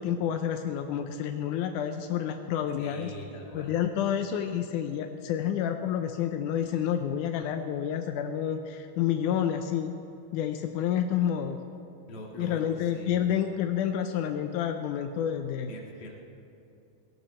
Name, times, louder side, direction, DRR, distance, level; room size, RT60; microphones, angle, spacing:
voice 1, 0.0-3.1 3.5-9.9 10.3-11.6 12.4-15.7, left 9 dB, 85° left, 6 dB, 1.8 m, -29 dB
voice 2, 2.8-3.8 12.1-13.1 15.7-16.1, left 1 dB, 45° left, -1 dB, 2.6 m, -42 dB
17.5 x 17.0 x 4.4 m, 2.7 s
omnidirectional pair, 4.4 m